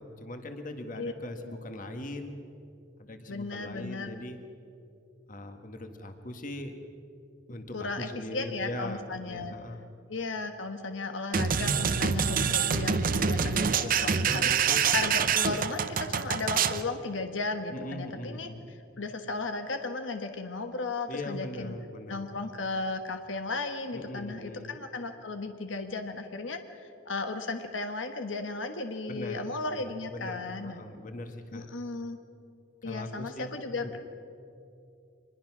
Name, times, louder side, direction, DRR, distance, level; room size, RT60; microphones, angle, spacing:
voice 1, 0.0-2.4 3.0-4.4 5.3-6.8 7.5-9.9 13.8-15.1 17.7-18.7 21.1-22.2 23.9-24.8 29.1-31.7 32.8-34.0, left 1 dB, 45° left, 6 dB, 1.7 m, -40 dB
voice 2, 3.3-4.1 7.7-9.6 10.1-14.5 14.9-18.5 19.0-21.7 22.1-26.6 27.0-30.8 31.5-32.2 32.8-34.0, left 3 dB, 90° left, 7 dB, 1.3 m, -35 dB
sound 1, 11.3-16.8, right 6 dB, 50° right, 0.8 m, -26 dB
24.5 x 21.0 x 6.2 m, 2.6 s
head